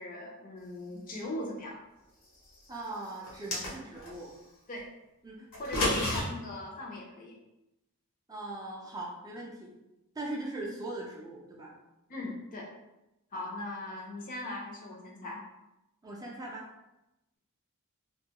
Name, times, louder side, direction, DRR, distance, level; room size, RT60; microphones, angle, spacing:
voice 1, 0.0-1.8 4.7-4.9 5.6-7.4 10.6-10.7 12.1-12.7 13.3-15.4, left 1 dB, 40° left, -1 dB, 0.5 m, -39 dB
voice 2, 2.7-4.3 5.2-6.1 8.3-9.7 10.2-11.7 12.2-12.3 13.3-13.4 16.0-16.7, right 2 dB, 15° right, -3 dB, 0.4 m, -40 dB
sound 1, 3.2-4.1 5.5-6.2, left 2 dB, 75° left, 1.0 m, -30 dB
2.6 x 2.2 x 2.8 m, 0.93 s
head